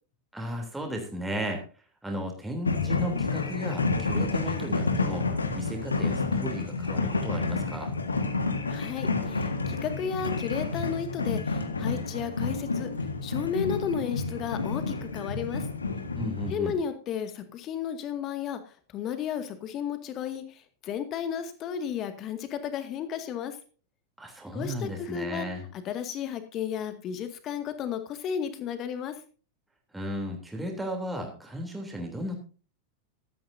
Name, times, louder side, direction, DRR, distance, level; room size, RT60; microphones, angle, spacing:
voice 1, 0.3-1.6 2.0-5.2 5.5-7.9 16.1-16.7 24.2-25.6 29.9-32.4, equal, 5° right, 2 dB, 3.3 m, -35 dB
sound 1, 2.6-16.5, left 3 dB, 75° left, 1.7 m, -29 dB
voice 2, 8.7-12.9 13.2-15.7 16.5-23.6 24.5-25.5 25.8-29.1, left 8 dB, 35° left, 8 dB, 2.1 m, -33 dB
16.0 x 13.0 x 2.7 m, 0.36 s
figure-of-eight pair, 90°, 0 cm